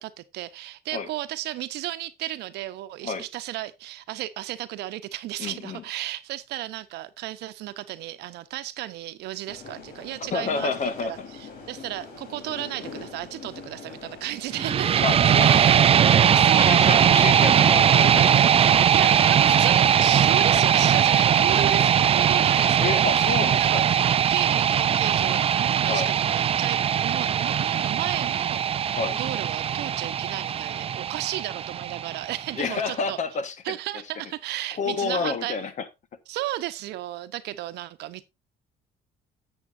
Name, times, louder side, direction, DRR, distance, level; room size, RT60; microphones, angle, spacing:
voice 1, 0.0-10.7 11.0-15.0 15.4-16.0 16.3-17.1 18.9-33.2 33.6-35.6 36.3-38.3, right 15 dB, 80° right, 1.0 m, -34 dB
voice 2, 5.4-5.8 10.3-11.1 15.0-15.9 16.5-18.6 22.8-23.8 25.9-26.1 28.9-29.2 32.5-33.5 34.8-35.9, left 5 dB, 45° left, 1.4 m, -29 dB
sound 1, 9.5-18.5, left 4 dB, 65° left, 4.3 m, -41 dB
sound 2, 14.5-32.5, right 9 dB, 35° right, 0.5 m, -20 dB
11.5 x 8.2 x 2.7 m
cardioid pair, 110°, 17 cm